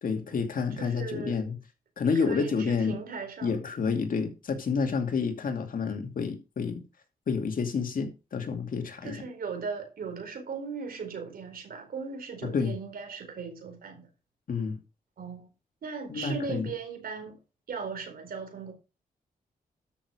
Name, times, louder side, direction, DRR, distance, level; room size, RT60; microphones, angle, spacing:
voice 1, 0.0-1.6 2.0-3.0 3.4-6.8 7.3-9.1 12.4-12.8 14.5-14.8 16.1-16.7, left 5 dB, 65° left, 2.5 m, -29 dB
voice 2, 0.8-1.4 2.1-3.6 9.0-14.1 15.2-15.5 15.8-17.4 17.7-18.7, right 5 dB, 75° right, 4.4 m, -37 dB
13.0 x 6.4 x 4.9 m
cardioid pair, 75°, 15 cm